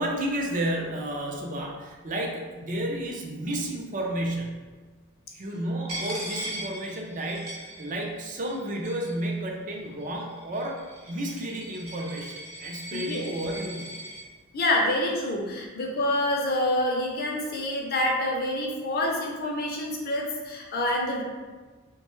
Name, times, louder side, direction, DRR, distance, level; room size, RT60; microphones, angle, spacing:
voice 1, 0.0-4.7 5.3-10.8 11.1-13.9, right 1 dB, 40° right, 0 dB, 0.5 m, -31 dB
Coin (dropping), 5.9-8.2 8.5-9.3 10.0-14.2, right 1 dB, 80° right, 0.9 m, -39 dB
voice 2, 12.9-13.3 14.5-21.2, left 1 dB, 45° left, 0 dB, 0.5 m, -27 dB
3.0 x 2.2 x 3.0 m, 1.4 s
head